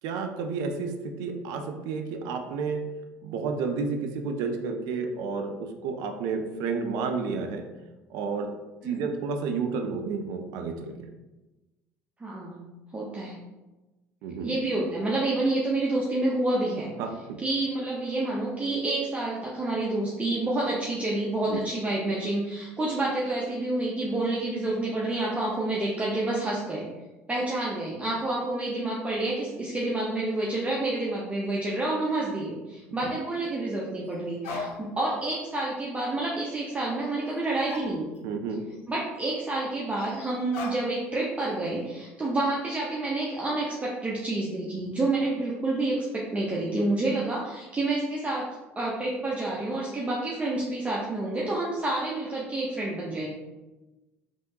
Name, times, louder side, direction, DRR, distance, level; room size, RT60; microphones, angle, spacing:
voice 1, 0.0-2.8 3.2-7.6 8.1-8.5 8.8-11.1 14.2-14.5 17.0-17.4 21.5-21.6 32.9-33.1 38.2-38.6, right 5 dB, 65° right, 5 dB, 0.4 m, -31 dB
voice 2, 12.2-12.6 12.9-13.4 14.4-16.9 17.4-26.9 27.3-38.2 38.9-48.5 48.8-53.3, right 2 dB, 20° right, -5 dB, 0.7 m, -28 dB
sound 1, 34.1-34.2 34.4-35.1 35.4-35.5 37.3-37.4 37.6-38.5 38.7-38.8 40.0-41.2 41.5-41.9, left 3 dB, 75° left, 0.6 m, -39 dB
3.5 x 2.6 x 2.7 m, 1.1 s
hypercardioid pair, 60°, 7 cm